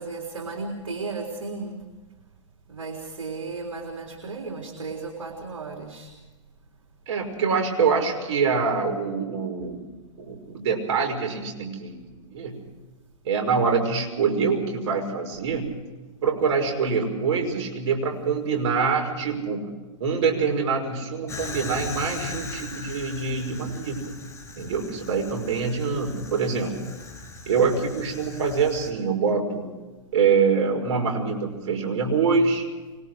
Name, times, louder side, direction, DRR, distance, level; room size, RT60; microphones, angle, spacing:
voice 1, 0.0-1.8 2.7-6.1, right 3 dB, 80° right, 1 dB, 3.8 m, -34 dB
voice 2, 7.1-9.8 10.2-12.0 12.3-12.6 13.2-15.7 16.2-19.7 20.0-24.2 24.6-26.8 27.5-29.7 30.1-32.6, right 5 dB, 55° right, 2 dB, 5.8 m, -25 dB
Fire, 21.3-28.9, left 3 dB, 20° left, 4.3 m, -39 dB
25.0 x 22.0 x 4.9 m, 1.2 s
hypercardioid pair, 120°, 17 cm